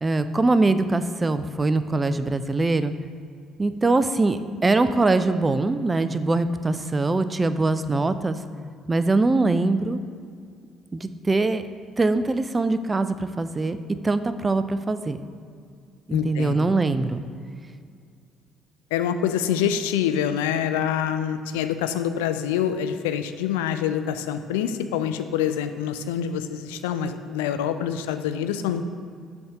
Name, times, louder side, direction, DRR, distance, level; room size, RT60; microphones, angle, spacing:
voice 1, 0.0-2.9 3.6-8.4 8.9-10.0 10.9-11.6 12.0-13.8 14.0-15.2 16.1-17.2, right 3 dB, 25° right, 11 dB, 0.4 m, -22 dB
voice 2, 16.1-16.7 18.9-28.8, left 9 dB, 75° left, 9 dB, 0.3 m, -26 dB
7.8 x 3.5 x 6.5 m, 2.2 s
figure-of-eight pair, 50°, 0 cm